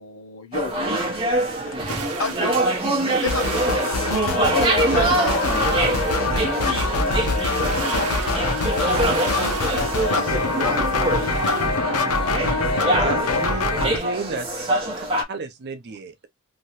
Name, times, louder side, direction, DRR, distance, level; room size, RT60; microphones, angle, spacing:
voice 1, 0.0-1.8 2.2-2.6 3.2-5.1 10.1-12.1, left 3 dB, 65° left, 1.1 m, -34 dB
sound 1, 0.5-15.2, right 1 dB, 25° right, 0.9 m, -24 dB
sound 2, 1.9-11.7, right 4 dB, 75° right, 0.8 m, -35 dB
sound 3, 3.2-14.0, left 3 dB, 85° left, 0.8 m, -24 dB
voice 2, 4.5-7.7 8.1-9.2, left 3 dB, 35° left, 0.7 m, -32 dB
voice 3, 13.0-14.5 15.0-16.3, right 4 dB, 45° right, 0.4 m, -32 dB
2.9 x 2.7 x 2.9 m
head